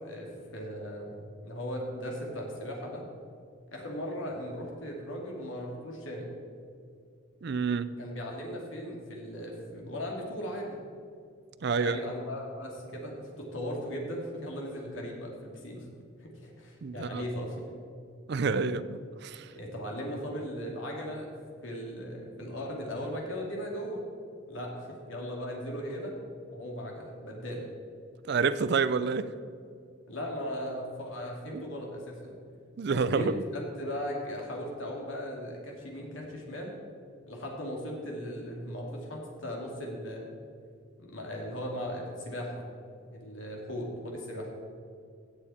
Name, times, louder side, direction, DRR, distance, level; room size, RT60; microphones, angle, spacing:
voice 1, 0.0-3.0 3.7-6.3 8.0-10.8 11.8-15.9 16.2-17.7 19.5-21.3 21.6-24.0 24.5-26.1 26.5-27.7 30.1-32.4 32.9-36.7 37.3-40.4 41.0-42.7 43.1-44.5, equal, 75° left, 2.4 m, -38 dB
voice 2, 7.4-8.0 11.6-12.0 16.8-17.3 18.3-19.5 28.3-29.3 31.5-31.6 32.8-33.4, right 5 dB, 55° right, 0.4 m, -28 dB
16.0 x 7.1 x 4.3 m
head